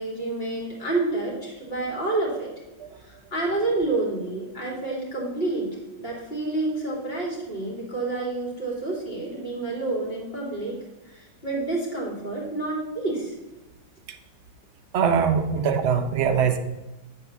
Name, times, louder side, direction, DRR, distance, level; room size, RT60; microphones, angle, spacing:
voice 1, 0.0-2.5 3.0-5.7 6.0-10.8 11.1-13.3, right 2 dB, 30° left, -3 dB, 2.2 m, -29 dB
voice 2, 14.9-16.6, right 6 dB, 60° right, 5 dB, 0.7 m, -22 dB
8.4 x 3.8 x 6.9 m, 1.0 s
omnidirectional pair, 2.1 m